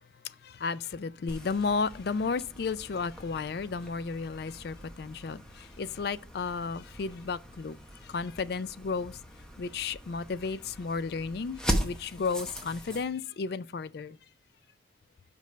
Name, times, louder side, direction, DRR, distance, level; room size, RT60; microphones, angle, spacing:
voice 1, 0.2-7.8 8.0-9.2 9.6-14.2, left 4 dB, 55° left, 0.4 m, -33 dB
sound 1, 1.3-13.1, equal, 5° left, 0.8 m, -39 dB
5.3 x 5.2 x 5.6 m
head